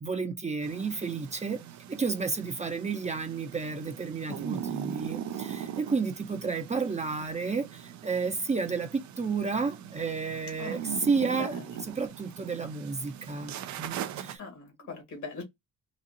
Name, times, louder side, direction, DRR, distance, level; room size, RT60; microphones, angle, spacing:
voice 1, 0.0-1.6 1.9-14.4, right 4 dB, 25° right, 0.6 m, -31 dB
sound 1, 0.6-14.4, right 9 dB, 70° right, 0.5 m, -40 dB
voice 2, 14.4-15.4, left 4 dB, 70° left, 2.0 m, -41 dB
4.0 x 2.4 x 2.8 m
cardioid pair, 90°, 30 cm